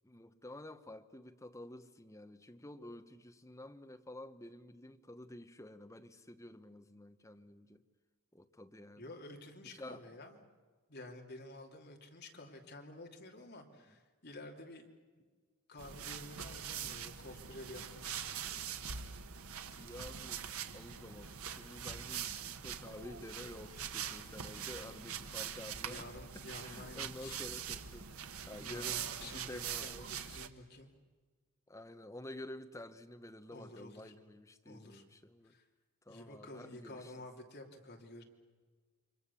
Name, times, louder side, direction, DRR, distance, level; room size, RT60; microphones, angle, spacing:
voice 1, 0.0-7.8 8.3-9.1 9.6-10.0 13.8-13.9 19.8-20.4 20.7-26.1 26.3-28.1 28.5-30.1 31.7-35.5 36.0-37.3, left 1 dB, 15° left, 1.0 m, -50 dB
voice 2, 9.0-10.5 10.9-14.9 15.7-18.3 25.8-27.4 28.6-30.9 33.5-34.1 34.6-35.0 35.4-35.6 36.1-38.2, left 2 dB, 50° left, 2.8 m, -51 dB
sound 1, 15.8-30.5, right 8 dB, 90° right, 1.3 m, -43 dB
28.5 x 24.0 x 7.0 m
head